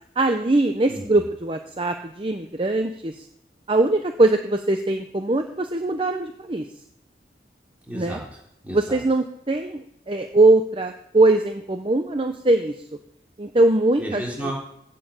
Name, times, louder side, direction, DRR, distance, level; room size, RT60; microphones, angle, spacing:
voice 1, 0.2-3.2 3.7-6.6 7.9-8.2 8.7-12.7 13.4-14.5, right 2 dB, 30° right, 6 dB, 0.7 m, -21 dB
voice 2, 0.9-1.2 7.8-9.0 14.0-14.5, right 1 dB, 10° right, -4 dB, 3.9 m, -33 dB
16.0 x 5.5 x 6.7 m, 0.74 s
head